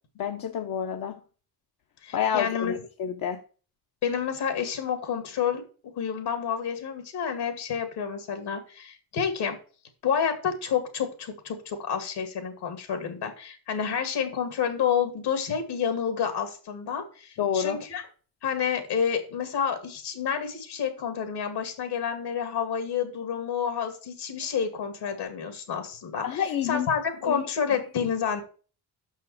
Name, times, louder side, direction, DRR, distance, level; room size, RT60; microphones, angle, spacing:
voice 1, 0.2-1.2 2.1-3.4 17.4-17.8 26.2-26.9 27.2-27.4, left 8 dB, 55° left, 0.9 m, -28 dB
voice 2, 2.0-2.8 4.0-5.6 6.0-9.6 10.0-18.0 18.4-28.4, left 7 dB, 75° left, 2.4 m, -29 dB
6.3 x 5.6 x 7.0 m
cardioid pair, 115°, 40 cm